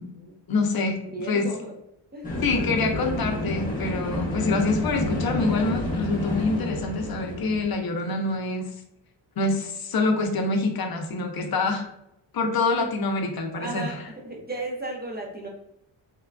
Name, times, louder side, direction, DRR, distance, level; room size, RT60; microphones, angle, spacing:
voice 1, 0.5-1.5 2.4-8.7 9.4-11.8 12.3-14.1, left 3 dB, 55° left, 3 dB, 0.5 m, -26 dB
voice 2, 1.0-1.7 2.1-2.2 2.5-2.6 13.6-14.0 14.2-15.5, right 2 dB, 20° right, -2 dB, 0.4 m, -34 dB
sound 1, 2.2-7.7, left 1 dB, 20° left, 0.7 m, -29 dB
3.1 x 2.2 x 2.4 m, 0.81 s
wide cardioid pair, 115°, 46 cm